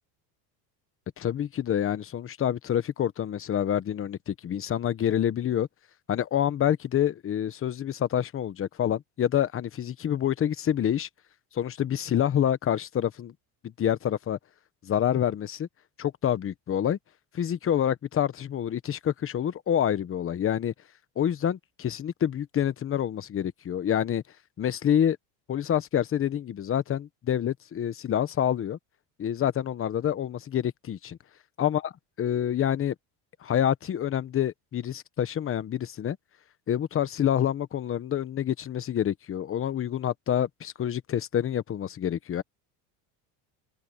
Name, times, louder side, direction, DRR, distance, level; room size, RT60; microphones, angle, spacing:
voice 1, 1.2-5.7 6.1-11.1 11.5-13.3 13.6-14.4 14.8-15.7 16.0-17.0 17.3-20.7 21.2-24.2 24.6-25.2 25.5-28.8 29.2-31.2 31.6-31.9 32.2-32.9 33.4-36.2 36.7-42.4, left 10 dB, 25° left, 1.1 m, -27 dB
open air
cardioid pair, 140°, 47 cm